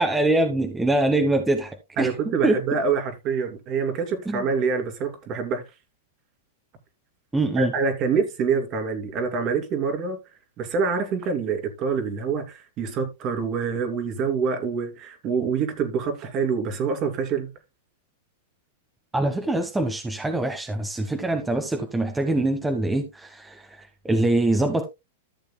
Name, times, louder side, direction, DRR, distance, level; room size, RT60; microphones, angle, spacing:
voice 1, 0.0-2.6 4.3-4.4 7.3-7.7 19.1-24.8, right 2 dB, 10° right, 1.2 m, -24 dB
voice 2, 2.0-5.6 7.6-10.2 10.6-17.5, right 5 dB, 40° right, 2.6 m, -26 dB
14.0 x 6.8 x 2.2 m
hypercardioid pair, 115°, 0 cm